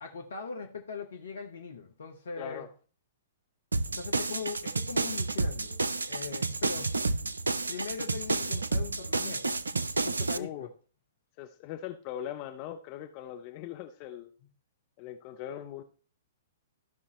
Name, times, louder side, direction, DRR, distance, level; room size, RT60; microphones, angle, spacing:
voice 1, 0.0-2.7 3.9-5.8 6.1-7.0 7.7-10.7, left 5 dB, 65° left, 1.2 m, -40 dB
voice 2, 2.4-2.7 10.3-10.7 11.4-14.3 15.0-15.8, left 11 dB, 35° left, 0.7 m, -40 dB
sound 1, 3.7-10.4, right 3 dB, 75° right, 0.5 m, -30 dB
14.0 x 5.5 x 3.2 m
figure-of-eight pair, 110°, 0 cm